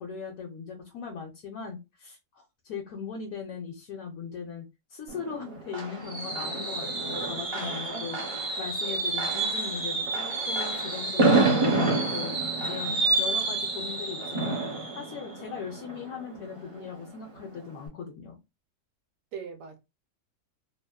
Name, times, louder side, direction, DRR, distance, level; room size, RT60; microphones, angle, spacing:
voice 1, 0.0-8.2 8.6-12.3 12.7-14.6 14.9-18.4, left 6 dB, 75° left, 1.0 m, -39 dB
Fireworks, 5.1-16.8 17.1-17.4 17.7-17.8, right 3 dB, 40° right, 0.4 m, -28 dB
voice 2, 7.6-8.1 8.8-9.0 19.3-19.8, right 5 dB, 70° right, 0.9 m, -41 dB
2.7 x 2.0 x 2.2 m
omnidirectional pair, 1.6 m